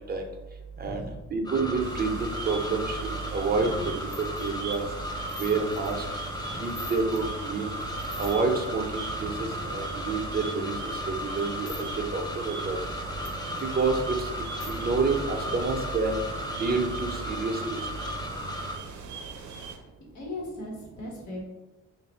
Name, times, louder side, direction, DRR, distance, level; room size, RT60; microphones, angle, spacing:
voice 1, 0.7-1.4 3.6-3.9 6.3-6.9 9.2-9.8 12.7-13.1 15.5-15.6 18.1-18.7 19.6-19.9 20.1-21.4, left 1 dB, 70° left, -2 dB, 1.3 m, -41 dB
voice 2, 1.3-3.0 3.3-3.7 3.9-4.1 4.4-4.9 5.4-6.0 6.6-7.7 8.2-9.3 9.7-10.7 11.1-11.9 12.1-12.8 13.7-14.3 14.7-16.2 16.6-17.8, right 4 dB, 30° right, 3 dB, 0.7 m, -28 dB
sound 1, 1.4-18.8, equal, 15° left, 0.5 m, -35 dB
Desert at Night, 1.8-19.8, right 4 dB, 70° right, 0.6 m, -41 dB
sound 2, 4.1-7.2 7.6-8.7 9.1-11.8 12.1-12.2 12.5-14.7 15.2-15.3 15.5-17.5, left 2 dB, 45° left, 0.9 m, -49 dB
3.0 x 2.6 x 4.2 m, 1.0 s
cardioid pair, 90°, 30 cm